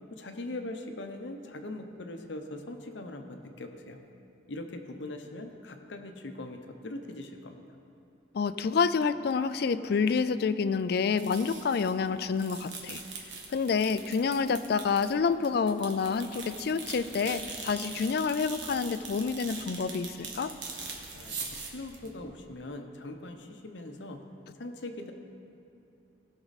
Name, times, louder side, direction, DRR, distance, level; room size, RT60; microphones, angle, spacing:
voice 1, 0.1-4.0 4.5-7.6 21.1-24.2 24.6-25.1, left 2 dB, 75° left, 5 dB, 0.8 m, -41 dB
voice 2, 8.3-13.0 13.5-20.5, left 5 dB, 60° left, 13 dB, 0.4 m, -28 dB
sound 1, 11.2-12.1 12.3-22.5, right 4 dB, 75° right, 1.5 m, -42 dB
17.0 x 6.1 x 4.1 m, 2.7 s
head